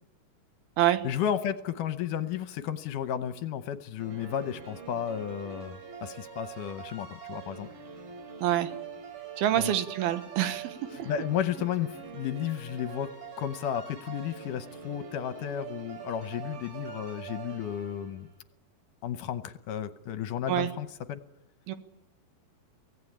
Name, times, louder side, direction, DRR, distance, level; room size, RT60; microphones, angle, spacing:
voice 1, 1.0-7.7 9.6-9.7 11.1-13.1 13.4-18.3 19.0-21.2, left 9 dB, 70° left, 11 dB, 2.2 m, -33 dB
sound 1, 4.0-18.3, right 7 dB, 75° right, 5.2 m, -44 dB
voice 2, 8.4-8.7 9.4-10.8 20.5-20.7 21.7-21.8, right 12 dB, 90° right, 10 dB, 3.2 m, -26 dB
24.5 x 17.0 x 8.6 m, 0.93 s
omnidirectional pair, 4.3 m